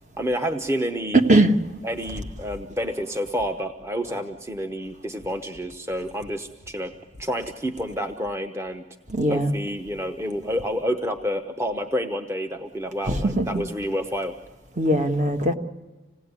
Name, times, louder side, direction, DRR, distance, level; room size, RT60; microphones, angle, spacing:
voice 1, 0.2-1.2 1.8-6.9 7.2-8.8 9.3-14.3, equal, 15° right, 0.9 m, -29 dB
voice 2, 1.1-1.6 9.1-9.5 13.1-13.6 14.8-15.5, right 1 dB, 40° right, 1.4 m, -20 dB
27.0 x 18.0 x 9.6 m
head